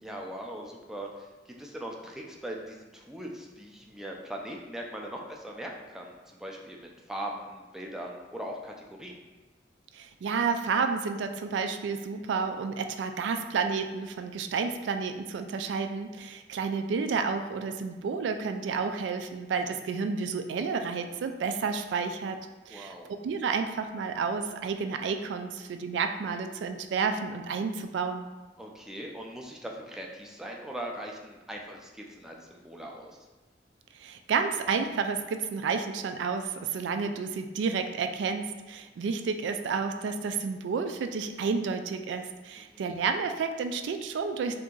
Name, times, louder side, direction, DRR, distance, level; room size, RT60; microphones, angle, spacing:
voice 1, 0.0-9.2 22.7-23.1 28.6-33.1 42.6-42.9, right 1 dB, 5° right, -1 dB, 0.4 m, -40 dB
voice 2, 9.9-22.4 22.7-28.3 34.0-44.5, right 5 dB, 80° right, 7 dB, 0.3 m, -31 dB
2.8 x 2.6 x 3.7 m, 1.2 s
head